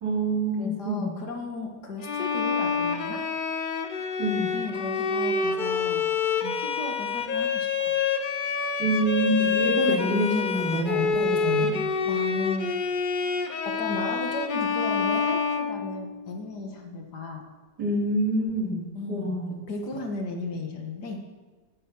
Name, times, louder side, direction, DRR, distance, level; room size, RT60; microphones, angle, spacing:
voice 1, 0.0-1.1 4.2-4.5 8.8-11.7 17.8-18.8 19.1-19.5, right 1 dB, 70° right, -3 dB, 4.3 m, -26 dB
voice 2, 0.6-3.2 4.5-6.0 6.4-8.0 12.1-12.7 13.6-17.4 18.9-19.4 19.7-21.2, left 2 dB, 70° left, 3 dB, 2.4 m, -35 dB
Bowed string instrument, 2.0-16.3, left 5 dB, 45° left, 0.7 m, -27 dB
16.0 x 9.9 x 6.2 m, 1.3 s
omnidirectional pair, 1.8 m